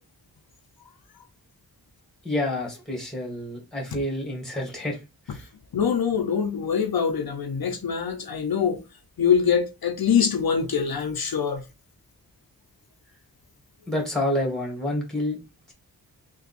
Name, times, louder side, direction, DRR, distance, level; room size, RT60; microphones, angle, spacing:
voice 1, 2.2-5.0 5.3-5.5 13.9-15.4 15.7-15.8, left 1 dB, ahead, 1.6 m, -28 dB
voice 2, 5.7-8.8 9.2-11.7, left 7 dB, 70° left, 0.7 m, -24 dB
3.4 x 2.4 x 4.1 m
wide cardioid pair, 70°, 38 cm